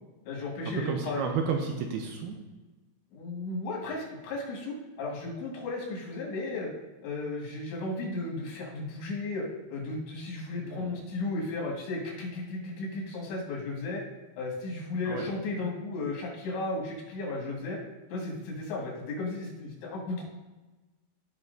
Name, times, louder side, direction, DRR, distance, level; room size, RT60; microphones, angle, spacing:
voice 1, 0.2-1.3 3.1-6.7 7.0-14.0 14.4-17.8 18.1-20.2, left 2 dB, 90° left, -2 dB, 4.1 m, -34 dB
voice 2, 0.9-2.4 10.6-11.0 15.1-15.3, right 5 dB, 80° right, 3 dB, 2.4 m, -32 dB
14.5 x 5.8 x 2.6 m, 1.2 s
omnidirectional pair, 5.0 m